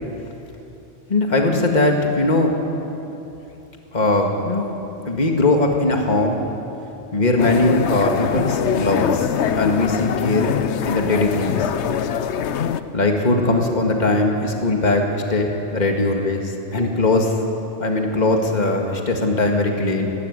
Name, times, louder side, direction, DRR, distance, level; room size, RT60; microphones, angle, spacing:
voice 1, 1.1-2.5 3.9-4.7 5.0-6.4 7.1-9.3 9.5-10.5 10.8-11.7 12.9-17.4 17.8-20.1, left 2 dB, 35° left, 2 dB, 2.0 m, -20 dB
sound 1, 7.4-12.8, left 8 dB, 70° left, 1.0 m, -23 dB
23.5 x 13.0 x 9.8 m, 3.0 s
omnidirectional pair, 1.3 m